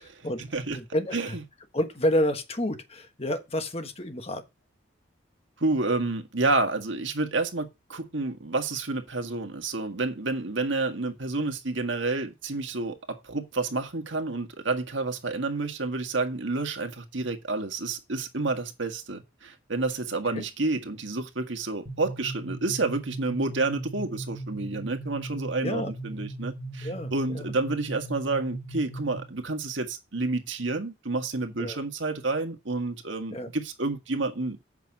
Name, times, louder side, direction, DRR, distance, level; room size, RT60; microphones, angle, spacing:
voice 1, 0.0-0.4 0.7-1.4 1.7-4.4 20.3-20.4 25.6-25.9 26.8-27.5 31.6-31.8 33.3-33.5, left 1 dB, 30° left, 1.3 m, -29 dB
voice 2, 5.6-34.6, right 3 dB, 70° right, 1.8 m, -29 dB
sound 1, 21.9-29.4, right 2 dB, 40° right, 2.3 m, -38 dB
8.1 x 6.1 x 5.3 m
head